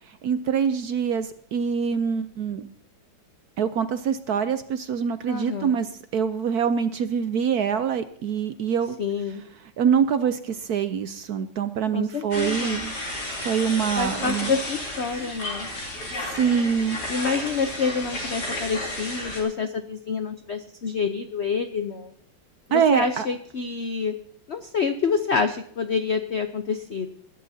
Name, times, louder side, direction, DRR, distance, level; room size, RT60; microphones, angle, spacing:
voice 1, 0.2-2.6 3.6-9.0 9.8-12.9 13.4-14.5 16.3-17.0 22.7-23.3, right 7 dB, 65° right, 11 dB, 1.0 m, -24 dB
voice 2, 5.3-5.8 9.0-9.4 11.9-12.8 14.0-15.7 17.1-22.1 22.7-24.2 24.5-27.1, left 5 dB, 70° left, 8 dB, 0.6 m, -27 dB
sound 1, 12.3-19.4, left 1 dB, 50° left, 3.8 m, -32 dB
21.0 x 11.5 x 2.7 m, 0.63 s
omnidirectional pair, 2.2 m